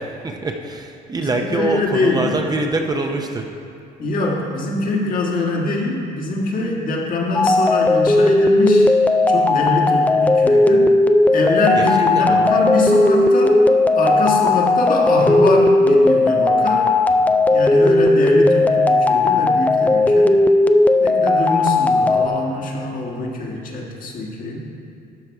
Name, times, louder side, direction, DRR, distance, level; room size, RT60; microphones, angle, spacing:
voice 1, 0.0-3.5 11.8-12.5, right 2 dB, 25° right, 3 dB, 0.7 m, -25 dB
voice 2, 1.2-2.4 4.0-9.0 9.3-10.9 11.3-13.6 13.9-17.2 17.5-20.3 21.0-24.6, left 2 dB, 55° left, -1 dB, 1.6 m, -23 dB
sound 1, 7.4-22.3, left 2 dB, 10° left, 0.4 m, -15 dB
12.5 x 5.2 x 4.7 m, 2.6 s
cardioid pair, 110°, 17 cm